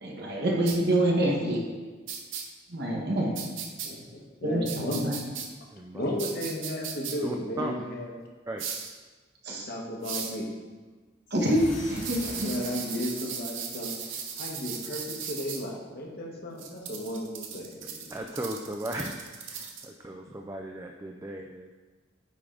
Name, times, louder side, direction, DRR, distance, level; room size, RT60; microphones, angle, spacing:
voice 1, 0.0-1.6 2.7-3.3 4.4-5.1 9.4-9.7 11.3-12.5, right 1 dB, 60° right, -2 dB, 1.2 m, -26 dB
sound 1, 0.7-0.8 2.1-2.4 3.3-3.9 4.6-5.5 6.2-7.1 8.6-8.9 10.0-10.4 12.0-15.6 16.6-19.9, right 7 dB, 85° right, 0.8 m, -37 dB
voice 2, 3.8-5.0 5.9-8.1 9.5-10.6 12.2-14.0 14.4-18.1, left 1 dB, 55° left, -1 dB, 1.1 m, -34 dB
voice 3, 5.7-6.2 7.2-7.8 8.5-8.6 18.1-21.7, right 1 dB, 15° right, 2 dB, 0.3 m, -37 dB
sound 2, 11.3-14.6, left 1 dB, 80° left, 1.8 m, -44 dB
9.7 x 3.4 x 3.8 m, 1.4 s
head